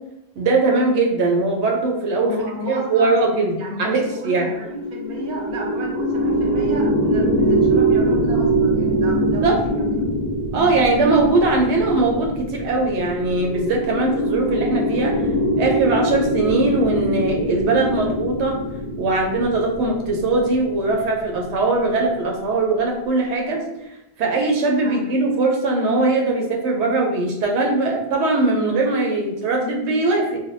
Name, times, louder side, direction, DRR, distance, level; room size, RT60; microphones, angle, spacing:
voice 1, 0.4-2.3 2.7-3.5 3.8-4.5 9.2-9.6 10.5-15.3 15.6-18.6 19.0-23.6 24.2-30.4, right 3 dB, 85° right, 1 dB, 0.9 m, -20 dB
voice 2, 2.2-3.2 3.6-10.1 10.5-10.7 24.8-25.2, left 1 dB, 45° right, -2 dB, 0.7 m, -32 dB
sound 1, 4.6-22.0, right 1 dB, 65° left, 1.1 m, -23 dB
3.3 x 2.2 x 2.5 m, 0.90 s
omnidirectional pair, 1.1 m